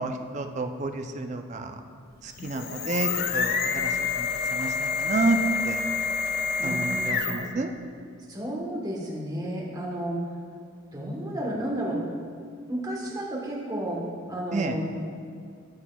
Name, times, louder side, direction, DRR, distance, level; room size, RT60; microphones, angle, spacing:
voice 1, 0.0-1.7 2.2-5.4 5.6-5.8 6.6-7.7 14.5-14.8, right 3 dB, 35° right, 6 dB, 0.4 m, -30 dB
sound 1, 2.3-7.6, left 5 dB, 45° left, 0.3 m, -28 dB
voice 2, 6.6-7.4 8.3-10.2 10.9-12.0 12.7-14.0 14.3-15.1, right 1 dB, 15° right, -3 dB, 1.0 m, -32 dB
13.0 x 4.4 x 2.2 m, 2.2 s
head